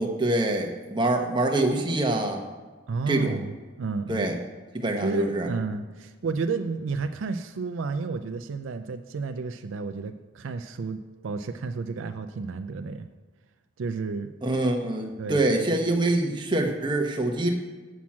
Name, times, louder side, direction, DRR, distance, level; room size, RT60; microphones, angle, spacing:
voice 1, 0.0-2.4 3.1-3.4 4.1-4.4 4.7-5.5 14.4-17.5, right 2 dB, 25° right, 2 dB, 0.9 m, -25 dB
voice 2, 2.9-4.3 5.0-13.1 13.8-14.3 15.2-15.8, right 4 dB, 75° right, 8 dB, 0.4 m, -31 dB
7.3 x 6.1 x 7.2 m, 1.3 s
head